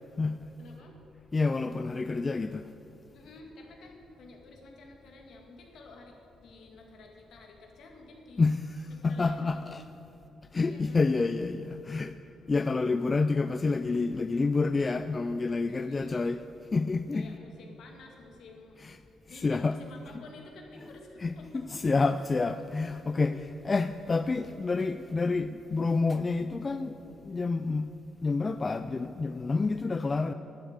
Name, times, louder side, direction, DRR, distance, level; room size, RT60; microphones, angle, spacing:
voice 1, 0.6-1.0 3.1-6.2 6.4-8.5 8.9-9.8 10.7-11.1 15.7-16.4 17.1-18.8 19.3-22.0 23.2-23.4, left 2 dB, 70° left, 1 dB, 2.2 m, -51 dB
voice 2, 1.3-2.7 8.4-9.8 10.5-12.2 12.5-16.4 16.7-17.3 18.8-19.0 19.4-19.8 21.2-23.3 23.7-27.9 28.2-30.3, left 3 dB, 30° left, 10 dB, 0.4 m, -28 dB
11.5 x 7.9 x 8.2 m, 3.0 s
cardioid pair, 90°, 0 cm